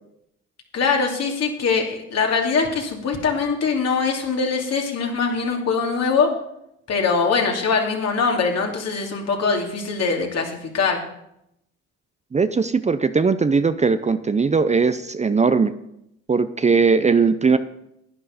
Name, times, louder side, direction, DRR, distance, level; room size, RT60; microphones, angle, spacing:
voice 1, 0.7-6.3 6.9-11.0, left 5 dB, 55° left, 1 dB, 2.6 m, -22 dB
voice 2, 12.3-15.7 16.3-17.6, right 5 dB, 25° right, 11 dB, 0.6 m, -19 dB
11.0 x 9.7 x 5.1 m, 0.79 s
supercardioid pair, 60°, 30 cm